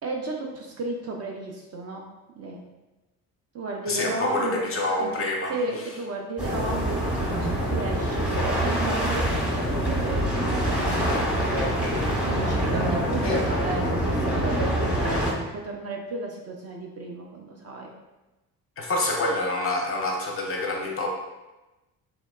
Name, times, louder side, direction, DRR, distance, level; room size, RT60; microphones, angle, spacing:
voice 1, 0.0-2.1 2.4-2.6 3.5-4.7 5.0-10.9 12.2-17.9, right 3 dB, 35° right, 0 dB, 0.4 m, -34 dB
voice 2, 3.9-5.6 13.2-13.4 18.8-21.1, left 2 dB, 30° left, 0 dB, 0.5 m, -27 dB
sound 1, 6.4-15.3, right 1 dB, ahead, 0.8 m, -25 dB
2.9 x 2.1 x 2.2 m, 1.1 s
hypercardioid pair, 50°, 46 cm